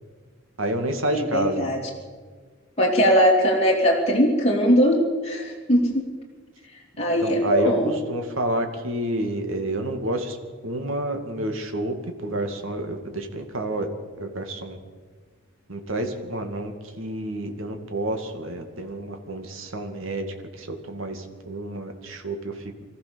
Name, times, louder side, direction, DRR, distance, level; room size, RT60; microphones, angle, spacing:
voice 1, 0.6-1.7 7.2-7.7 8.1-10.4 10.6-11.9 12.2-13.9 14.2-14.8 15.7-20.3 20.5-22.5, right 1 dB, 75° right, 5 dB, 2.5 m, -29 dB
voice 2, 1.1-1.8 2.8-5.0 5.2-6.0 7.0-8.0, equal, 30° left, -2 dB, 3.0 m, -20 dB
25.5 x 14.5 x 7.1 m, 1.5 s
head